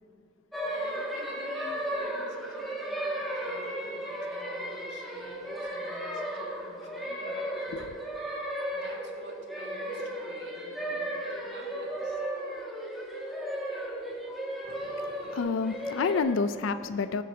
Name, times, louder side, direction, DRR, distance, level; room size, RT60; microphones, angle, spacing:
sound 1, 0.5-16.2, right 1 dB, ahead, 1.9 m, -35 dB
voice 1, 0.6-7.5 8.7-12.2, equal, 60° right, -1 dB, 1.9 m, -50 dB
voice 2, 14.7-17.2, left 5 dB, 65° left, 12 dB, 0.4 m, -30 dB
21.5 x 8.4 x 2.8 m, 2.6 s
head